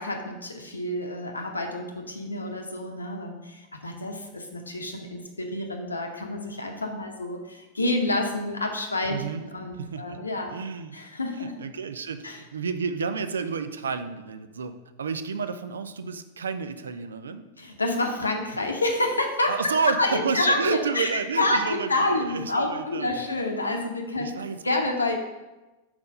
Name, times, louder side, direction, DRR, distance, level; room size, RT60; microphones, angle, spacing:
voice 1, 0.0-9.2 9.4-10.6 10.9-11.5 12.2-12.4 17.6-21.1 21.4-24.3 24.6-25.1, left 2 dB, 80° left, 3 dB, 0.7 m, -28 dB
voice 2, 9.1-9.4 9.8-10.2 10.5-11.0 11.4-14.7 15.0-17.4 19.5-23.2 24.2-24.6, right 5 dB, 70° right, 10 dB, 0.4 m, -30 dB
4.3 x 4.3 x 5.3 m, 1.1 s
figure-of-eight pair, 90°, 0 cm